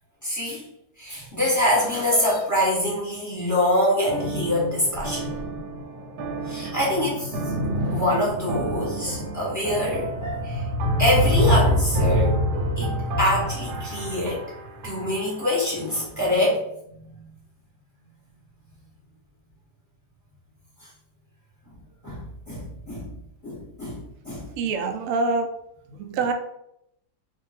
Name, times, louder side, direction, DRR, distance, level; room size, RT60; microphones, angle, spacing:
voice 1, 0.2-0.6 1.0-5.3 6.4-7.4 7.9-10.7 11.0-12.4 12.8-14.4 14.8-16.6 17.0-17.2 22.0-23.2 23.4-24.5, left 1 dB, 10° left, -6 dB, 1.2 m, -25 dB
sound 1, 2.1-2.5 3.5-3.6 4.2-4.3 4.9-5.6, left 5 dB, 70° left, 1.0 m, -34 dB
sound 2, 4.1-15.5, equal, 85° right, 1.2 m, -26 dB
voice 2, 24.6-25.5 25.9-26.3, right 3 dB, 70° right, 5 dB, 0.8 m, -25 dB
2.7 x 2.5 x 4.1 m, 0.76 s
omnidirectional pair, 1.8 m